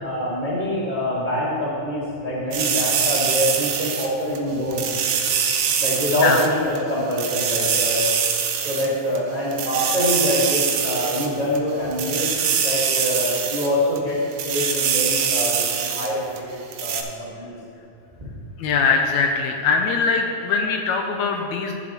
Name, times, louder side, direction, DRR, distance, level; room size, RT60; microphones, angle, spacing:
voice 1, 0.0-4.9 5.8-8.1 8.6-12.3 12.6-17.5 18.2-18.3, equal, 30° right, -8 dB, 0.9 m, -25 dB
sound 1, 2.5-4.4 4.7-6.5 6.7-6.8 7.1-8.9 9.1-9.2 9.5-11.6 11.9-13.7 14.0-14.1 14.3-16.1 16.4-16.5 16.7-17.0, right 7 dB, 80° right, 1.3 m, -23 dB
voice 2, 18.6-21.7, left 5 dB, 80° left, 3 dB, 1.8 m, -21 dB
14.5 x 7.0 x 2.9 m, 2.6 s
omnidirectional pair, 3.5 m